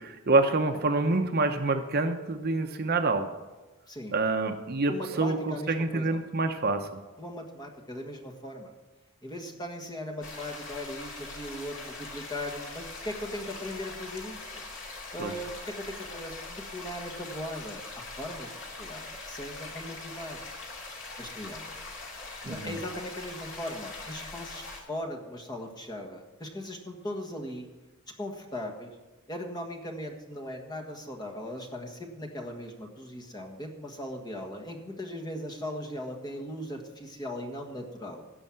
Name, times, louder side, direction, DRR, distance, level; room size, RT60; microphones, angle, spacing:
voice 1, 0.0-3.3 4.1-7.0 15.2-15.3 22.5-22.7, right 3 dB, 45° right, 6 dB, 0.8 m, -27 dB
voice 2, 4.9-6.2 7.2-8.7 9.2-14.6 15.1-18.5 18.8-20.4 21.2-21.8 22.4-27.7 28.2-28.9 29.3-38.2, left 1 dB, 20° left, 1 dB, 1.5 m, -39 dB
sound 1, 10.2-24.8, left 3 dB, 60° left, 2.4 m, -42 dB
16.5 x 5.6 x 7.6 m, 1.2 s
head